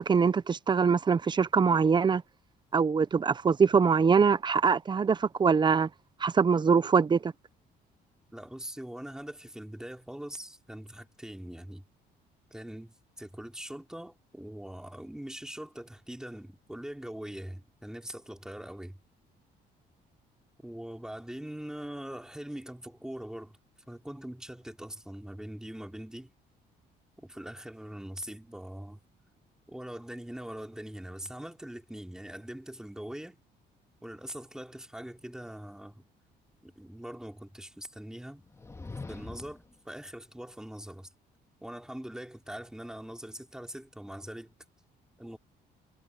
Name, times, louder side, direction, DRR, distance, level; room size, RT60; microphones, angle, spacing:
voice 1, 0.0-2.2 2.7-5.9 6.2-7.3, right 5 dB, 25° right, 0.7 m, -23 dB
voice 2, 8.3-11.8 12.5-19.0 20.6-23.6 23.9-26.3 27.2-29.0 29.7-33.4 34.0-36.1 36.6-38.4 39.1-41.1 41.6-44.5 45.2-45.4, right 1 dB, 5° right, 3.4 m, -42 dB
sound 1, 38.4-39.7, left 3 dB, 15° left, 2.2 m, -43 dB
cardioid pair, 120°, 17 cm